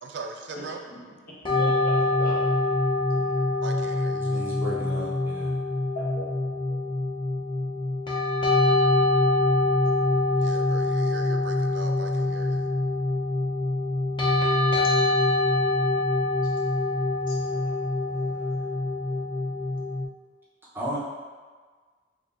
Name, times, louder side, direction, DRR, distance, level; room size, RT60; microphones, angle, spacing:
voice 1, 0.0-0.8 3.6-4.5 10.4-12.7, right 3 dB, 65° right, 3 dB, 0.3 m, -40 dB
voice 2, 0.5-1.0 1.5-2.8 3.1-3.4 5.9-6.3 14.4-15.9 16.2-18.8 19.0-19.2, left 1 dB, 50° left, -6 dB, 0.9 m, -42 dB
sound 1, 1.4-20.1, left 2 dB, 25° left, 0.5 m, -24 dB
voice 3, 4.1-5.6 20.7-21.0, equal, 10° right, -7 dB, 0.7 m, -34 dB
4.2 x 3.0 x 2.4 m, 1.5 s
head